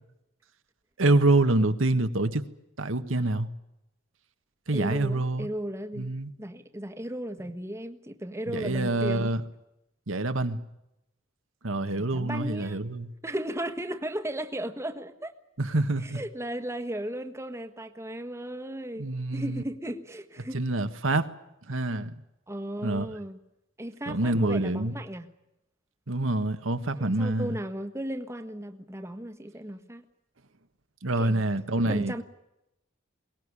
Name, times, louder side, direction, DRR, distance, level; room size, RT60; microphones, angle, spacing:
voice 1, 1.0-2.4 2.8-3.5 4.7-5.5 6.0-6.3 8.5-9.4 10.1-10.6 11.6-13.1 15.6-16.2 19.0-19.6 20.5-21.3 21.7-22.2 22.8-23.1 24.1-24.9 26.1-27.5 31.0-32.2, right 2 dB, 80° right, 8 dB, 1.5 m, -26 dB
voice 2, 4.7-6.1 6.4-9.3 11.9-12.8 13.2-15.3 16.0-20.6 22.5-23.4 23.8-25.3 27.0-30.0 31.2-31.4 31.9-32.2, right 1 dB, 15° right, 8 dB, 1.3 m, -35 dB
22.5 x 19.5 x 9.9 m, 0.87 s
head